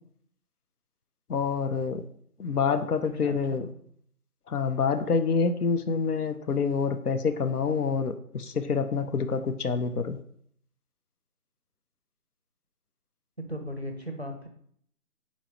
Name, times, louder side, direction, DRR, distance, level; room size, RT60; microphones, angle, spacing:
voice 1, 1.3-2.0 2.4-3.7 4.5-10.2, left 5 dB, 70° left, 8 dB, 0.6 m, -27 dB
voice 2, 3.0-3.7 13.5-14.5, equal, 45° right, 4 dB, 0.5 m, -37 dB
4.4 x 4.1 x 2.9 m, 0.64 s
figure-of-eight pair, 180°, 47 cm